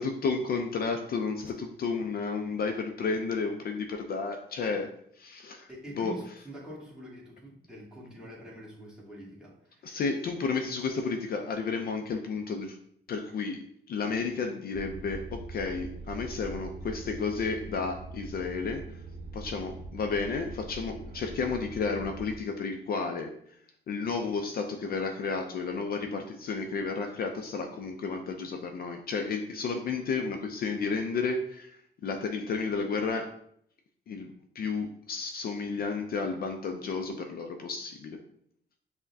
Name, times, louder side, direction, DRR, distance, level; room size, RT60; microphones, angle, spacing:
voice 1, 0.0-4.9 5.1-5.7 6.0-6.1 9.8-12.8 13.1-19.0 19.3-23.6 23.9-33.4 34.1-38.2, left 4 dB, 50° left, 4 dB, 0.4 m, -32 dB
voice 2, 5.7-10.0, right 1 dB, 5° right, -5 dB, 1.4 m, -45 dB
sound 1, 14.7-22.4, right 3 dB, 45° right, 0.7 m, -42 dB
5.6 x 2.1 x 2.6 m, 0.69 s
cardioid pair, 90°, 20 cm